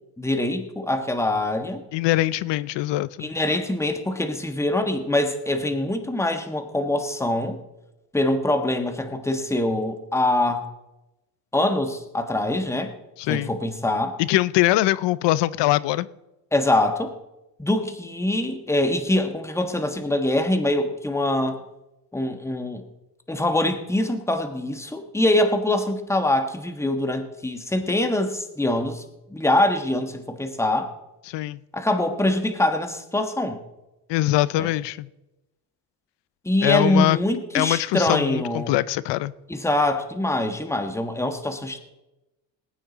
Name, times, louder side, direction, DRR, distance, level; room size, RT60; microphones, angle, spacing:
voice 1, 0.2-1.8 3.2-7.6 8.1-10.7 11.5-12.9 13.3-14.2 16.5-17.1 17.6-21.6 22.1-22.9 23.3-29.0 29.3-30.9 31.7-33.6 34.6-34.7 36.4-38.7 39.5-41.8, left 1 dB, 5° left, 6 dB, 1.3 m, -24 dB
voice 2, 1.9-3.3 13.2-13.5 14.2-16.1 31.3-31.6 34.1-35.1 36.6-37.2 37.5-39.3, left 16 dB, 85° left, 19 dB, 0.6 m, -22 dB
20.0 x 9.1 x 4.0 m, 0.97 s
cardioid pair, 100°, 41 cm